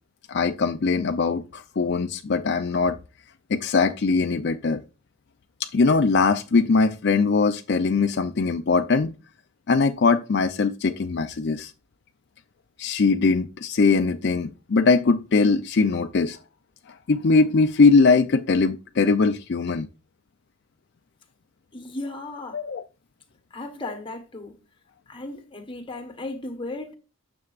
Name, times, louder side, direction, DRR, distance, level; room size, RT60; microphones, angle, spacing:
voice 1, 0.3-3.0 3.5-4.8 5.6-9.1 9.7-11.7 12.8-16.4 17.1-19.9 22.5-22.8, left 4 dB, 55° left, 0.5 m, -21 dB
voice 2, 21.7-22.6 23.5-24.6 25.1-27.0, left 2 dB, 25° left, 1.3 m, -35 dB
9.7 x 6.9 x 2.5 m
head